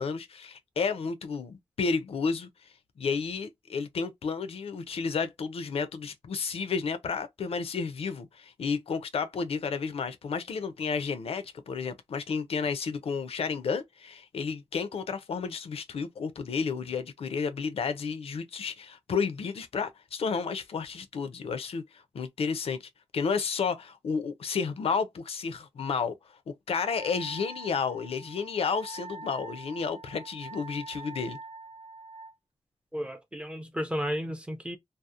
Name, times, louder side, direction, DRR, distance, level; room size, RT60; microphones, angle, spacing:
voice 1, 0.0-2.5 3.0-26.1 26.5-31.4, left 5 dB, 75° left, 0.4 m, -32 dB
Wind instrument woodwind instrument, 26.7-32.3, right 3 dB, 80° right, 0.7 m, -44 dB
voice 2, 32.9-34.8, equal, 10° right, 0.4 m, -33 dB
2.7 x 2.0 x 2.3 m
wide cardioid pair, 155°, 10 cm